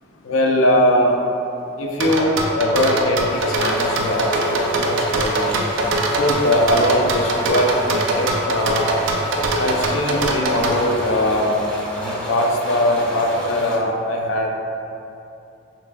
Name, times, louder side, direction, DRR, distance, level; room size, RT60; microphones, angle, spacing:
voice 1, 0.2-1.2 1.8-5.5 6.2-8.9 9.6-11.6 12.0-14.5, left 1 dB, 70° left, 0 dB, 0.5 m, -21 dB
sound 1, 2.0-10.8, right 2 dB, 65° right, 0.5 m, -22 dB
sound 2, 3.3-13.8, equal, 5° left, 0.6 m, -30 dB
5.8 x 3.3 x 2.3 m, 2.7 s
head